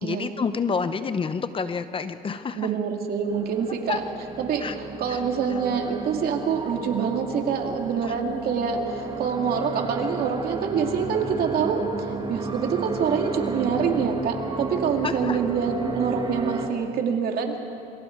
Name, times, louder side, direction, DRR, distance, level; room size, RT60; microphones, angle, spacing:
voice 1, 0.0-2.7 3.9-4.0 4.6-4.7 5.1-5.2 8.0-8.2 15.0-15.4, left 5 dB, 30° left, 11 dB, 0.9 m, -28 dB
voice 2, 2.6-4.0 4.4-11.8 12.3-17.6, right 6 dB, 65° right, 2 dB, 2.6 m, -26 dB
sound 1, 3.3-16.7, right 4 dB, 25° right, 1.8 m, -33 dB
27.5 x 24.0 x 4.7 m, 2.7 s
cardioid pair, 110°, 17 cm